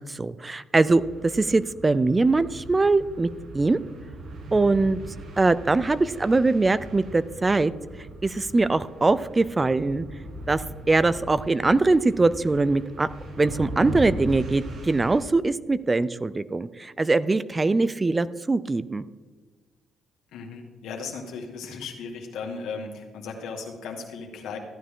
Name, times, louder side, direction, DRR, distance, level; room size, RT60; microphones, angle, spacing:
voice 1, 0.1-3.3 3.5-3.8 4.5-5.0 5.4-7.7 8.2-10.1 10.5-13.1 13.4-19.0, right 3 dB, 25° right, 16 dB, 0.4 m, -22 dB
sound 1, 0.8-15.2, right 1 dB, 65° right, 2.1 m, -39 dB
voice 2, 20.3-24.6, left 5 dB, 85° left, 2 dB, 2.0 m, -36 dB
14.5 x 9.7 x 3.7 m, 1.4 s
cardioid pair, 90°, 0 cm